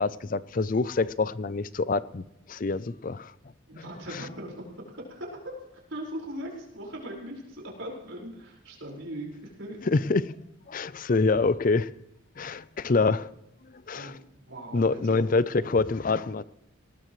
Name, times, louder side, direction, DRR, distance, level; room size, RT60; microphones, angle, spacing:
voice 1, 0.0-3.3 9.9-10.3 10.7-11.9 12.4-13.3 13.7-14.1 14.7-16.4, left 3 dB, 45° left, 16 dB, 0.5 m, -26 dB
voice 2, 3.7-9.8 13.9-15.3, right 1 dB, 80° right, -2 dB, 5.1 m, -40 dB
20.0 x 18.5 x 3.2 m, 0.85 s
head